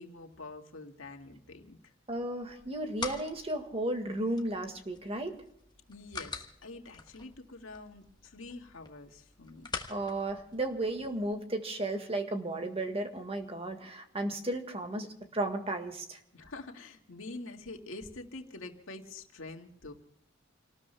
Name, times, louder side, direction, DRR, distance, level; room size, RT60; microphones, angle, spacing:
voice 1, 0.0-1.9 5.9-9.7 16.3-19.9, left 2 dB, 85° left, 3 dB, 2.1 m, -46 dB
voice 2, 2.1-5.4 9.9-16.2, right 1 dB, 30° right, 5 dB, 1.8 m, -34 dB
sound 1, 2.4-11.3, left 4 dB, 20° left, 1.4 m, -46 dB
29.5 x 19.5 x 2.3 m, 0.76 s
head